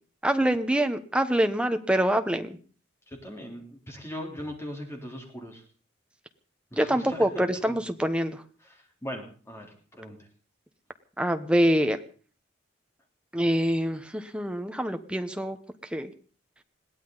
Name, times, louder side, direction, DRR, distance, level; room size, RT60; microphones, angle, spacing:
voice 1, 0.2-2.6 6.7-8.4 11.2-12.0 13.3-15.6 15.9-16.1, equal, 5° right, 7 dB, 1.0 m, -25 dB
voice 2, 3.1-5.6 6.7-7.3 7.7-7.8 8.6-10.2, equal, 15° left, 1 dB, 3.5 m, -39 dB
21.5 x 16.5 x 4.0 m, 0.40 s
head